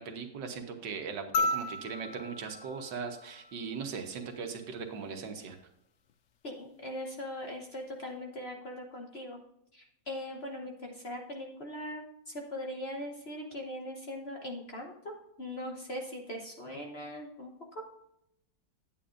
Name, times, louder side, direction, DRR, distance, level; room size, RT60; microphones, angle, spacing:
voice 1, 0.0-5.6, right 5 dB, 75° right, 4 dB, 1.7 m, -39 dB
sound 1, 1.3-3.9 5.5-5.6, left 2 dB, 90° left, 0.6 m, -34 dB
voice 2, 6.4-9.4 9.7-17.8, left 1 dB, 40° left, 0 dB, 1.1 m, -40 dB
9.7 x 8.6 x 2.5 m, 0.80 s
omnidirectional pair, 1.9 m